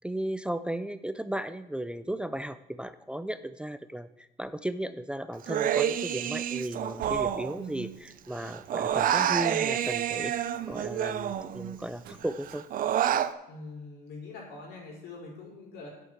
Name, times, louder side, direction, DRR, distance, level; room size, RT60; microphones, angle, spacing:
voice 1, 0.0-10.3 10.7-12.6, right 1 dB, 5° right, 12 dB, 0.5 m, -35 dB
Human voice, 5.4-8.1 8.3-11.8 12.2-13.3, right 10 dB, 55° right, 0.7 m, -29 dB
sound 1, 5.7-12.6, right 5 dB, 75° right, 1.5 m, -53 dB
voice 2, 13.5-15.9, left 3 dB, 80° left, -2 dB, 5.1 m, -44 dB
8.6 x 7.5 x 8.1 m, 0.95 s
cardioid pair, 110°, 17 cm